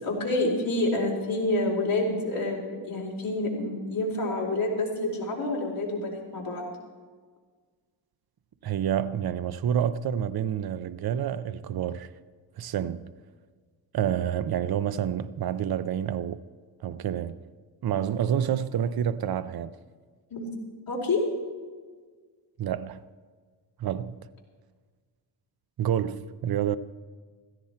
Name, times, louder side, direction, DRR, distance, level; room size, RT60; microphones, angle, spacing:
voice 1, 0.0-6.6 20.3-20.5 20.9-21.2, left 2 dB, 45° left, 3.9 m, -28 dB
voice 2, 8.6-12.1 12.6-13.1 13.9-16.4 16.8-17.4 17.8-19.7 22.6-23.0 23.8-24.1 25.8-26.8, right 9 dB, 50° right, 0.6 m, -28 dB
16.0 x 14.0 x 4.3 m
wide cardioid pair, 120°, 47 cm